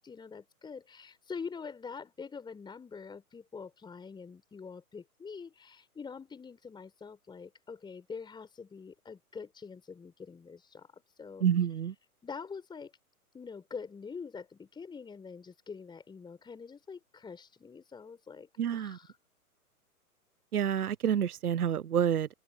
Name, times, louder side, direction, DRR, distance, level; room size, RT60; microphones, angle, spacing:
voice 1, 0.0-11.5 12.2-12.9 13.3-19.1, left 5 dB, 10° left, 4.8 m, -45 dB
voice 2, 11.4-11.9 18.6-19.0 20.5-22.3, right 9 dB, 75° right, 0.7 m, -28 dB
figure-of-eight pair, 115°, 45 cm